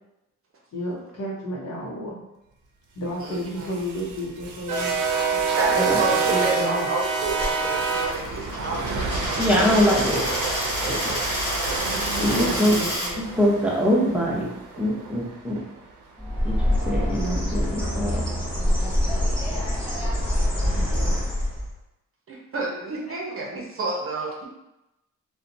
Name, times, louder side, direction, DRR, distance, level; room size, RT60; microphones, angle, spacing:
voice 1, 0.7-2.3 2.9-5.0 5.3-6.9 9.6-10.1 11.9-13.2 17.5-19.7 20.6-21.3 23.1-23.5 23.8-24.1, equal, 55° left, -2 dB, 0.8 m, -34 dB
voice 2, 3.2-3.7 5.6-9.5 10.0-10.2 22.3-24.5, right 2 dB, 45° right, -2 dB, 0.7 m, -30 dB
Commuter train passing, 3.4-15.6, right 4 dB, 85° right, 0.5 m, -27 dB
Coin (dropping), 7.3-13.1, left 1 dB, 35° left, 1.3 m, -30 dB
voice 3, 9.4-10.3 10.8-11.2 12.2-12.8 13.2-14.5 14.8-15.6 16.4-16.5 16.9-18.2, equal, 5° right, -5 dB, 0.7 m, -23 dB
Bird, 16.2-21.7, left 1 dB, 15° left, 1.1 m, -24 dB
2.6 x 2.2 x 2.6 m, 0.90 s
cardioid pair, 95°, 30 cm